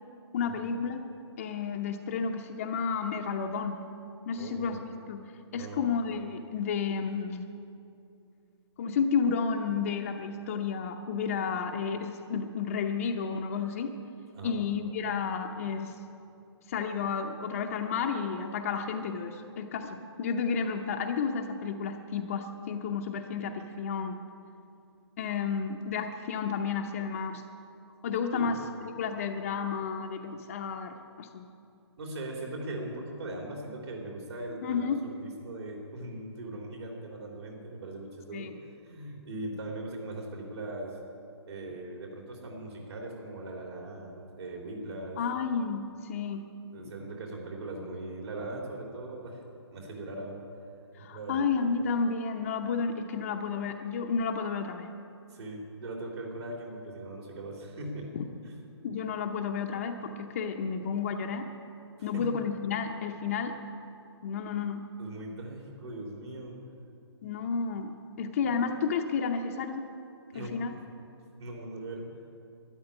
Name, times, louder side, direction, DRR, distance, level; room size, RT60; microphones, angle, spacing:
voice 1, 0.3-1.0 1.4-3.8 4.3-5.2 5.5-7.5 8.8-14.0 14.4-15.9 16.7-24.2 25.2-27.4 28.0-31.5 34.6-35.0 38.3-38.5 45.2-46.5 51.0-54.9 58.1-58.2 58.8-61.5 62.0-63.6 64.2-64.8 67.2-69.9 70.3-70.8, left 6 dB, 30° left, 3 dB, 0.7 m, -31 dB
voice 2, 4.4-4.8 5.5-6.0 14.3-14.6 28.3-28.6 32.0-41.0 41.5-45.2 46.7-49.4 49.7-50.4 51.0-51.5 55.3-58.1 58.4-58.5 62.0-62.3 65.0-66.6 70.3-70.8 71.4-72.2, right 2 dB, 65° right, 0 dB, 3.4 m, -40 dB
13.0 x 10.0 x 9.9 m, 2.6 s
hypercardioid pair, 160°, 15 cm